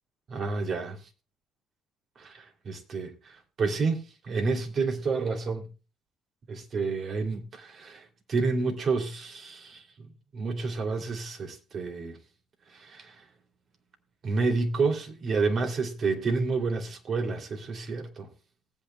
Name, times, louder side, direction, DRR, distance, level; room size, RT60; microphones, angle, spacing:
voice 1, 0.3-1.1 2.2-5.6 6.5-9.8 10.3-12.2 12.7-13.2 14.2-18.3, right 4 dB, 50° right, 2.7 m, -29 dB
19.0 x 8.7 x 2.2 m
hypercardioid pair, 60°, 0 cm